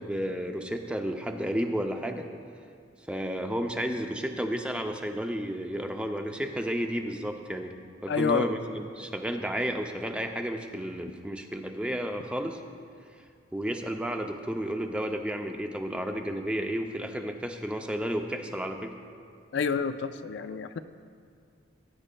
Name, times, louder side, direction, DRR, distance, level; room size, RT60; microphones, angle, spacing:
voice 1, 0.0-2.4 3.1-12.6 13.5-18.9, equal, 5° right, 4 dB, 0.4 m, -32 dB
voice 2, 8.1-8.5 19.5-20.8, left 6 dB, 65° left, 10 dB, 0.4 m, -28 dB
17.5 x 9.8 x 2.2 m, 2.3 s
head